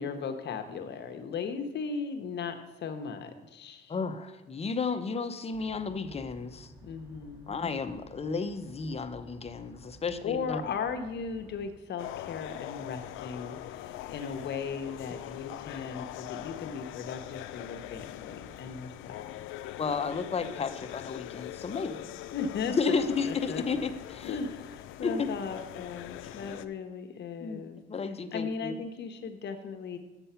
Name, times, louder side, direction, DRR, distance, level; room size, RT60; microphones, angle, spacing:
voice 1, 0.0-4.0 6.8-7.6 10.2-19.2 22.3-23.0 23.2-23.9 24.2-27.8 28.3-30.0, left 5 dB, 60° left, 7 dB, 0.9 m, -37 dB
voice 2, 3.9-6.7 7.5-10.6 19.8-22.1 22.8-24.4 25.0-25.3 27.4-28.7, left 4 dB, 30° left, 9 dB, 0.7 m, -33 dB
sound 1, 5.5-11.7, equal, 25° right, 2.6 m, -54 dB
sound 2, 12.0-26.7, left 13 dB, 90° left, 0.4 m, -42 dB
7.0 x 6.7 x 5.6 m, 1.1 s
cardioid pair, 90°, 20 cm